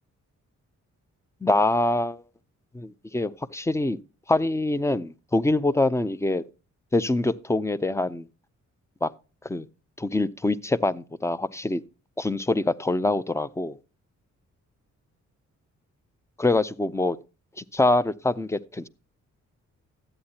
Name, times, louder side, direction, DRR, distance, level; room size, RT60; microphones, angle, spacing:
voice 1, 1.4-2.2 2.7-4.0 4.3-6.4 6.9-8.3 9.0-9.1 9.4-9.7 10.0-11.8 12.2-13.8 16.4-17.2 17.6-18.9, left 2 dB, 10° left, 0.5 m, -24 dB
13.0 x 8.7 x 2.8 m
cardioid pair, 95°, 30 cm